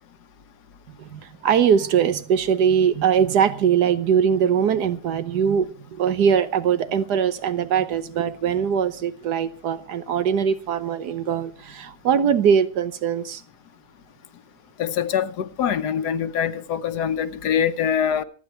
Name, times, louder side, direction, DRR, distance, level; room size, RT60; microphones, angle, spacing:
voice 1, 1.0-13.4, right 7 dB, 85° right, 1.6 m, -21 dB
voice 2, 14.8-18.2, left 8 dB, 85° left, 1.5 m, -24 dB
26.5 x 9.9 x 4.5 m
omnidirectional pair, 1.7 m